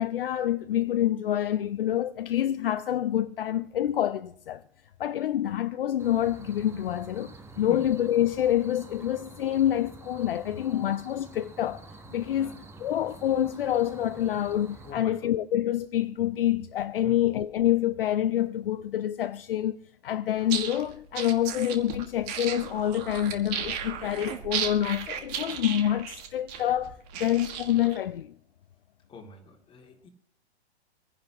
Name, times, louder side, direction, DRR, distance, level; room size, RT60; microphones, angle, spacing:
voice 1, 0.0-4.6 5.0-11.8 12.1-12.5 12.8-19.8 20.0-26.9 27.2-28.3, left 11 dB, 55° left, 0.6 m, -27 dB
sound 1, 6.0-14.9, right 3 dB, 10° right, 1.0 m, -48 dB
voice 2, 14.8-15.3 17.0-17.2 29.1-30.1, left 4 dB, 15° left, 2.4 m, -45 dB
sound 2, 20.4-28.0, right 8 dB, 35° right, 1.7 m, -35 dB
26.5 x 10.5 x 2.9 m
figure-of-eight pair, 115°, 33 cm